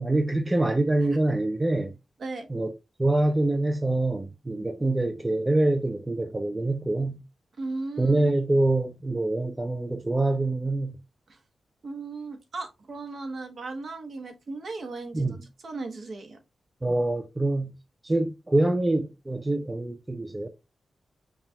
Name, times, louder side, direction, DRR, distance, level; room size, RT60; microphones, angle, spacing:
voice 1, 0.0-1.9 2.5-2.7 3.0-7.2 8.0-11.0 15.1-15.4 16.8-17.7 18.0-20.5, right 2 dB, 15° right, 0.4 m, -25 dB
voice 2, 7.6-8.1 11.3-11.4 11.8-15.4 15.6-16.4, right 3 dB, 55° right, 0.9 m, -36 dB
5.5 x 2.3 x 2.7 m
wide cardioid pair, 115°, 0 cm